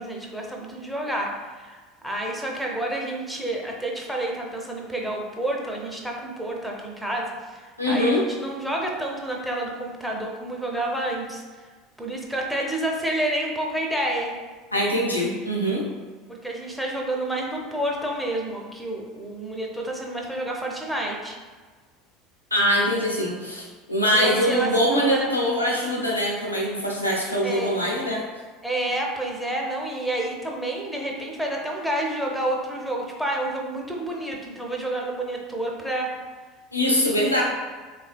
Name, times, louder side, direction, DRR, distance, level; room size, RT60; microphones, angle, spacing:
voice 1, 0.0-1.3 1.6-7.6 7.9-11.4 12.0-14.3 16.3-21.4 24.1-25.3 27.4-27.7 28.6-36.1, right 1 dB, ahead, -1 dB, 0.6 m, -29 dB
voice 2, 7.8-8.3 14.7-15.9 22.5-28.2 36.7-37.4, equal, 90° left, -4 dB, 0.6 m, -23 dB
3.4 x 3.2 x 2.2 m, 1.4 s
figure-of-eight pair, 70°, 0 cm